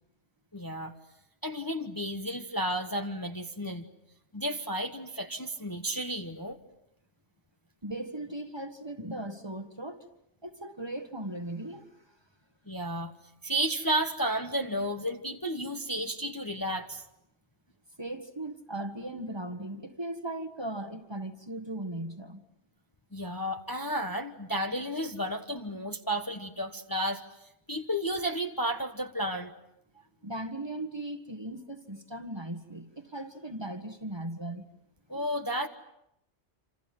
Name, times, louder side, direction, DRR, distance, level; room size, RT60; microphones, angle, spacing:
voice 1, 0.5-0.9 1.4-3.9 4.3-6.6 12.7-13.1 13.4-17.0 23.1-27.2 27.7-29.5 35.1-35.7, equal, 20° left, 5 dB, 1.2 m, -32 dB
voice 2, 7.8-10.1 10.4-11.8 18.0-22.4 30.2-34.6, right 1 dB, 20° right, 5 dB, 1.6 m, -38 dB
27.5 x 27.5 x 7.7 m, 0.81 s
omnidirectional pair, 1.2 m